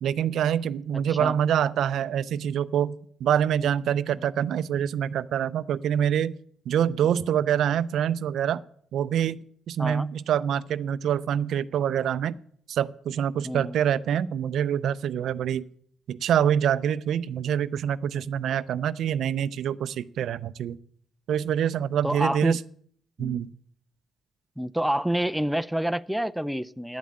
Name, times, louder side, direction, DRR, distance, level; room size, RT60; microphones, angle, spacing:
voice 1, 0.0-3.0 3.2-6.3 6.7-8.6 8.9-12.3 12.7-15.6 16.1-20.8 21.3-22.6 23.2-23.5, right 9 dB, 70° right, 0.5 m, -25 dB
voice 2, 0.9-1.4 4.1-4.2 9.8-10.1 13.4-13.8 22.0-22.6 23.2-23.4 24.6-27.0, right 1 dB, ahead, 0.4 m, -28 dB
9.7 x 7.5 x 8.5 m
cardioid pair, 90°, 0 cm